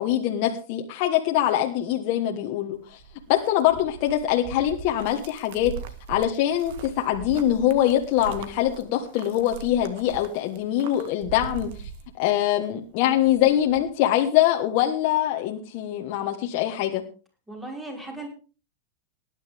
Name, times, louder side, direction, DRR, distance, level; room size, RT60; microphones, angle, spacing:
voice 1, 0.0-3.0 3.3-5.7 6.1-11.9 12.2-17.0, left 12 dB, 50° left, 1 dB, 1.5 m, -23 dB
sound 1, 2.7-12.7 13.0-13.9, right 6 dB, 60° right, 1.8 m, -41 dB
voice 2, 17.5-18.3, right 2 dB, 10° right, 0 dB, 5.7 m, -36 dB
18.5 x 10.5 x 3.6 m, 0.35 s
supercardioid pair, 145°, 0 cm